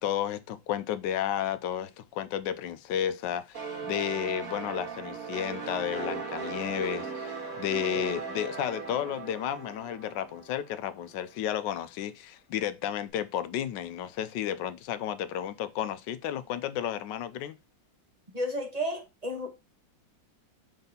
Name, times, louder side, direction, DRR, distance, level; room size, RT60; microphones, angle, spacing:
voice 1, 0.0-17.6, left 10 dB, 75° left, 1.2 m, -32 dB
sound 1, 3.5-11.0, right 4 dB, 50° right, 1.9 m, -38 dB
voice 2, 18.3-19.5, equal, 20° right, 1.4 m, -32 dB
4.4 x 4.1 x 5.2 m
omnidirectional pair, 2.0 m